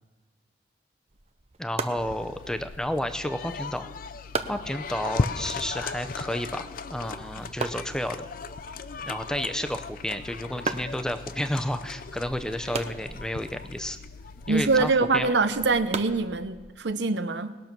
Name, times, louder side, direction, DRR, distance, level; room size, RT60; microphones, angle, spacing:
sound 1, 1.1-16.9, right 4 dB, 35° right, 0.7 m, -40 dB
voice 1, 1.6-3.9 4.5-8.3 9.1-14.0 14.5-15.3, left 1 dB, 5° left, 9 dB, 0.6 m, -31 dB
sound 2, 2.0-14.9, left 4 dB, 50° left, 0.5 m, -37 dB
voice 2, 14.5-17.6, right 3 dB, 75° right, 11 dB, 0.8 m, -24 dB
20.0 x 6.8 x 6.0 m, 1.4 s
head